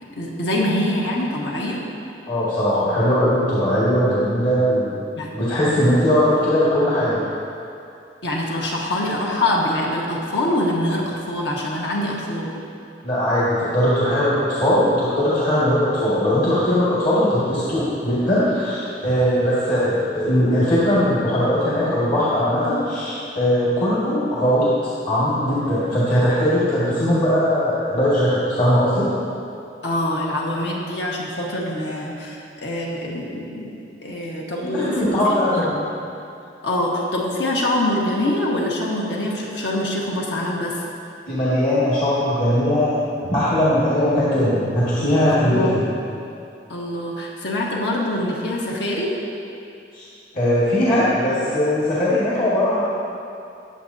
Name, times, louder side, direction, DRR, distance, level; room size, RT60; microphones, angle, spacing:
voice 1, 0.2-1.8 5.1-5.3 8.2-12.5 29.8-33.8 34.0-35.7 36.6-40.8 45.3-45.9 46.7-49.2, left 1 dB, 75° left, -3 dB, 1.6 m, -24 dB
voice 2, 2.3-5.0 5.3-7.2 13.0-24.7 25.1-29.1 34.6-35.8 41.3-43.0 43.2-45.8 49.9-50.0 50.3-52.8, equal, 50° left, -10 dB, 2.1 m, -19 dB
18.5 x 7.7 x 2.8 m, 2.6 s
head